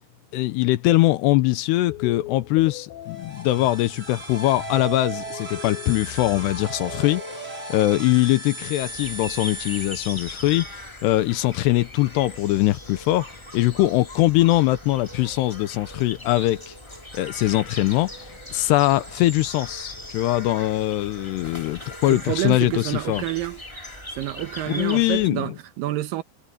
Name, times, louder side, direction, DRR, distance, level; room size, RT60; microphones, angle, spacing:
voice 1, 0.3-16.8 17.1-23.2 24.7-25.5, left 17 dB, 80° left, 2.7 m, -22 dB
sound 1, 1.9-7.2, left 11 dB, 60° left, 3.5 m, -40 dB
sound 2, 3.1-10.7, right 3 dB, 15° right, 3.9 m, -36 dB
sound 3, 8.8-25.3, left 1 dB, 15° left, 0.9 m, -40 dB
voice 2, 22.1-23.6 24.2-26.2, right 15 dB, 80° right, 2.0 m, -28 dB
omnidirectional pair, 5.1 m